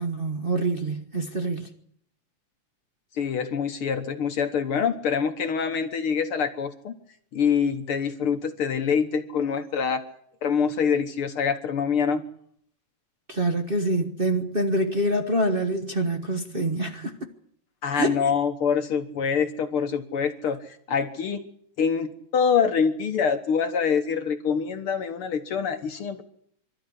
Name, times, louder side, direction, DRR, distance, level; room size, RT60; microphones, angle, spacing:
voice 1, 0.0-1.7 13.3-17.3 17.9-18.2, right 1 dB, 60° right, 0.5 m, -26 dB
voice 2, 3.2-6.9 7.3-10.0 10.4-12.2 17.8-21.4 21.8-26.2, left 6 dB, 60° left, 1.8 m, -25 dB
25.0 x 13.0 x 9.8 m
omnidirectional pair, 3.3 m